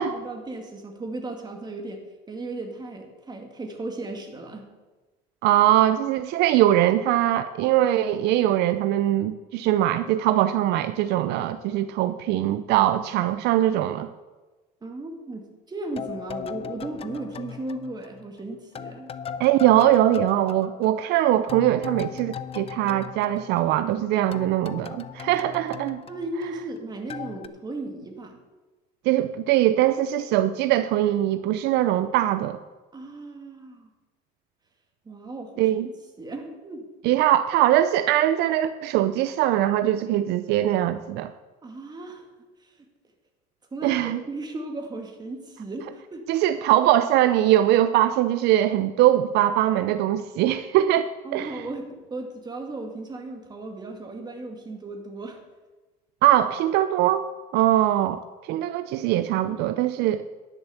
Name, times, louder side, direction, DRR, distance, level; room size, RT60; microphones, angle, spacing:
voice 1, 0.1-2.0 2.3-4.7 14.8-19.1 26.1-28.4 32.9-33.9 35.1-35.8 36.2-36.9 41.6-42.2 43.7-46.2 51.2-55.4, right 2 dB, 25° right, 3 dB, 2.2 m, -36 dB
voice 2, 5.4-14.1 19.4-26.0 29.1-32.6 35.6-35.9 37.0-41.3 43.8-44.2 46.3-51.6 56.2-57.3 57.5-58.2 58.5-60.3, right 13 dB, 70° right, 11 dB, 0.5 m, -21 dB
sound 1, 16.0-18.4 18.8-24.0 24.3-26.8 27.1-27.5, left 8 dB, 35° left, 0.5 m, -38 dB
10.5 x 6.8 x 7.0 m, 1.2 s
supercardioid pair, 100°, 18 cm